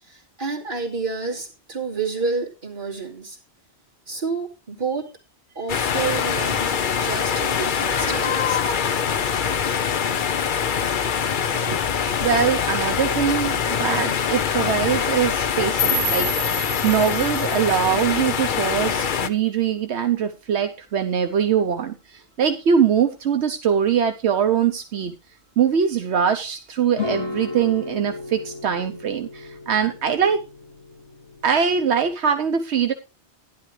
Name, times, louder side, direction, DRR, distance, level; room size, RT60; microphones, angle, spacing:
voice 1, 0.0-3.4 4.1-5.1 5.5-8.6, right 4 dB, 50° right, -2 dB, 2.8 m, -29 dB
sound 1, 5.7-19.3, left 7 dB, 55° left, 0.8 m, -24 dB
voice 2, 12.2-16.5 16.8-25.2 25.6-30.5 31.4-32.9, right 7 dB, 75° right, 6 dB, 1.1 m, -22 dB
sound 2, 15.8-18.8, left 2 dB, 5° right, 6.2 m, -28 dB
sound 3, 26.9-32.1, left 4 dB, 85° left, 2.1 m, -35 dB
12.0 x 11.0 x 3.2 m, 0.28 s
omnidirectional pair, 1.1 m